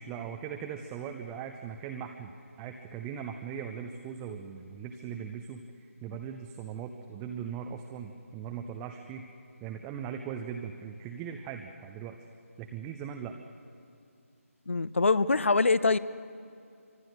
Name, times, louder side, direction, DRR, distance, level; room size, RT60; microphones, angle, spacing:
voice 1, 0.0-9.3 9.6-12.2 12.6-13.4, right 7 dB, 10° right, 4 dB, 0.5 m, -39 dB
voice 2, 14.7-16.0, left 3 dB, 55° left, 17 dB, 0.8 m, -24 dB
25.5 x 24.5 x 6.5 m, 2.5 s
figure-of-eight pair, 155°, 8 cm